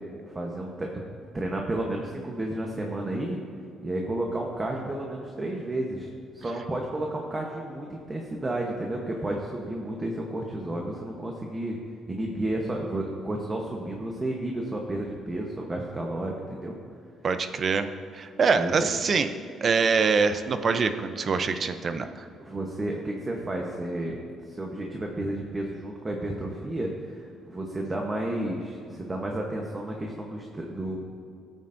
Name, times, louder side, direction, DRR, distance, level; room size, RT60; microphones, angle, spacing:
voice 1, 0.3-0.9 1.3-3.4 3.8-11.8 12.1-16.8 18.5-18.7 22.4-24.2 24.5-31.0, right 1 dB, 20° right, 0 dB, 1.0 m, -32 dB
voice 2, 17.2-17.9 18.1-19.3 19.6-22.3, right 5 dB, 35° right, 9 dB, 0.6 m, -24 dB
19.0 x 9.0 x 2.6 m, 2.5 s
cardioid pair, 155°, 0 cm